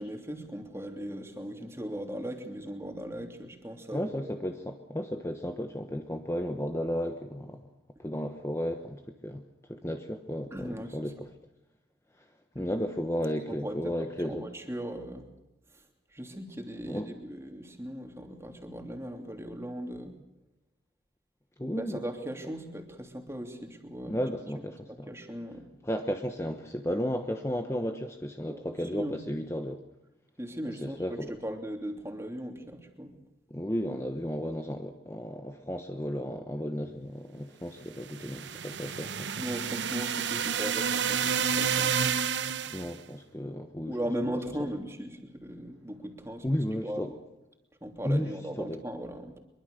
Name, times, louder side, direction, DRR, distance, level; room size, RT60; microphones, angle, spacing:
voice 1, 0.0-4.3 10.5-11.1 12.5-12.7 13.5-15.2 15.7-15.8 16.1-20.1 21.7-24.2 24.5-25.7 28.5-29.2 30.4-33.2 39.4-42.0 43.9-46.5 46.8-47.2 47.8-49.4, equal, 15° right, 4 dB, 3.0 m, -38 dB
voice 2, 3.9-7.7 8.0-9.4 9.7-11.3 12.5-14.4 16.8-17.1 21.6-22.0 24.1-25.1 25.8-29.8 30.7-31.3 33.5-39.3 42.7-43.9 46.4-47.1 48.0-48.3 48.6-48.8, equal, 15° left, 6 dB, 1.1 m, -33 dB
sound 1, 38.0-42.9, right 7 dB, 70° right, 0.9 m, -30 dB
24.0 x 23.0 x 6.7 m, 0.95 s
head